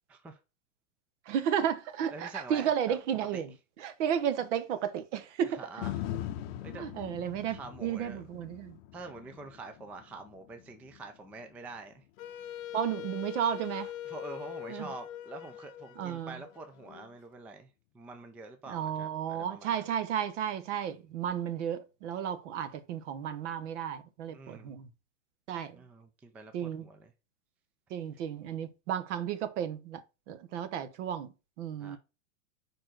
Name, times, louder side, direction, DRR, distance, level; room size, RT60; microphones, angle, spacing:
voice 1, 0.1-0.4 2.1-3.4 5.4-6.1 6.6-6.9 7.5-8.2 8.9-12.0 14.0-19.9 24.3-24.7 25.7-27.1 31.8-32.0, right 3 dB, 5° right, 0.3 m, -46 dB
voice 2, 1.3-3.5 3.8-5.6 6.7-8.8 12.7-13.9 14.7-14.9 16.0-16.4 18.7-24.9 25.5-25.8 26.5-26.9 27.9-30.0 30.3-31.3 31.6-32.0, right 9 dB, 60° right, 1.2 m, -33 dB
sound 1, 5.8-14.0 14.4-14.5, left 12 dB, 50° left, 0.7 m, -43 dB
Wind instrument woodwind instrument, 12.2-17.1, left 11 dB, 80° left, 0.7 m, -43 dB
5.1 x 4.3 x 6.0 m
hypercardioid pair, 125°, 40 cm